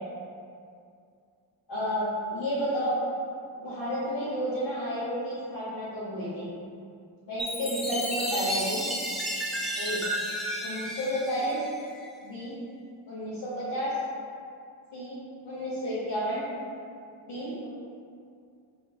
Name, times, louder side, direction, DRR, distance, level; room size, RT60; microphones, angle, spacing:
voice 1, 1.7-3.0 3.5-6.5 7.3-8.8 9.8-10.0 10.6-11.6 12.2-12.5 13.1-13.9 14.9-15.2 15.4-16.4 17.3-17.7, equal, 65° left, -12 dB, 1.4 m, -31 dB
Chime, 7.4-12.1, equal, ahead, 0.5 m, -32 dB
4.2 x 2.1 x 4.2 m, 2.4 s
cardioid pair, 85°, 45 cm